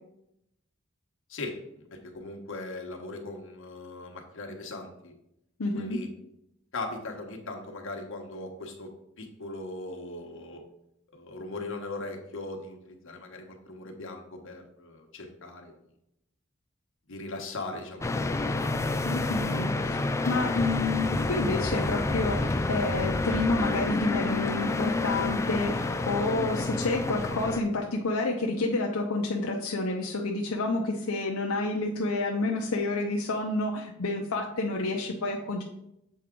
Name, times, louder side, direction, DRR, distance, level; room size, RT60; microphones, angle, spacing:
voice 1, 1.3-5.1 5.7-6.1 6.7-8.9 9.2-10.6 11.1-15.7 17.1-18.5, left 2 dB, 65° left, 2 dB, 1.2 m, -39 dB
voice 2, 5.6-6.0 19.1-20.0 20.3-35.6, left 2 dB, 85° left, 0 dB, 0.7 m, -29 dB
sound 1, 18.0-27.6, left 3 dB, 15° left, 0.3 m, -29 dB
7.3 x 4.6 x 3.8 m, 0.80 s
head